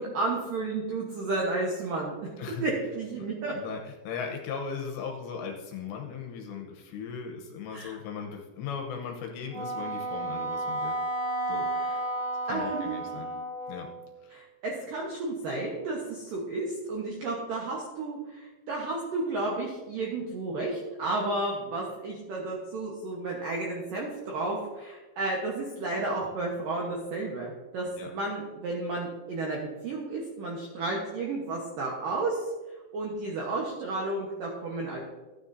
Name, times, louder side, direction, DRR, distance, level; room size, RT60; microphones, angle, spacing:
voice 1, 0.0-2.1 2.6-3.5 7.7-8.0 11.7-12.0 12.5-13.0 14.3-32.4 32.9-35.0, right 2 dB, 75° right, -2 dB, 2.0 m, -32 dB
voice 2, 3.5-11.0 11.5-11.7 12.5-13.3 13.7-13.9 14.2-14.4 28.0-28.1, left 6 dB, 75° left, 3 dB, 2.8 m, -38 dB
Wind instrument woodwind instrument, 9.5-14.0, right 1 dB, 50° right, 4.3 m, -32 dB
14.0 x 9.7 x 2.7 m, 1.2 s
omnidirectional pair, 5.7 m